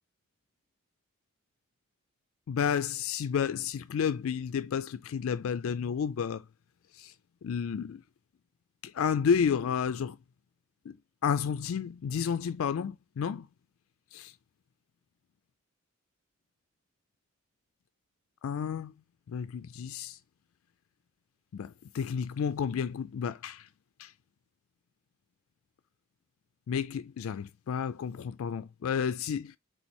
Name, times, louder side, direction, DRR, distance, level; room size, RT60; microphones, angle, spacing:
voice 1, 2.5-6.5 6.9-7.1 7.4-8.0 8.8-10.2 10.9-11.0 11.2-13.5 14.1-14.3 18.4-18.9 19.3-20.2 21.5-23.7 24.0-24.1 26.7-29.6, left 7 dB, 75° left, 0.4 m, -31 dB
4.3 x 3.9 x 2.9 m
head